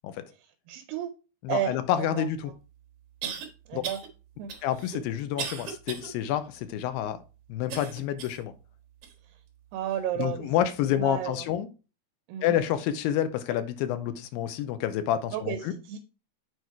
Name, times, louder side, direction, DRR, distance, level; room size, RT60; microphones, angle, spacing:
voice 1, 0.7-1.1 1.5-2.3 3.2-3.3 3.7-4.0 4.4-4.5 9.7-10.5 11.0-11.5 12.3-12.5 15.3-16.0, right 11 dB, 80° right, 2.3 m, -32 dB
voice 2, 1.4-2.5 3.7-3.8 4.6-7.2 7.5-8.5 10.2-11.7 12.4-15.7, left 11 dB, 85° left, 2.4 m, -28 dB
sound 1, 2.2-2.3 3.2-3.5 3.8-4.1 4.5-6.1 6.6-6.7 7.7-8.4 9.0-9.1 9.9-10.0, right 7 dB, 55° right, 2.0 m, -37 dB
7.2 x 4.6 x 4.5 m
omnidirectional pair, 4.2 m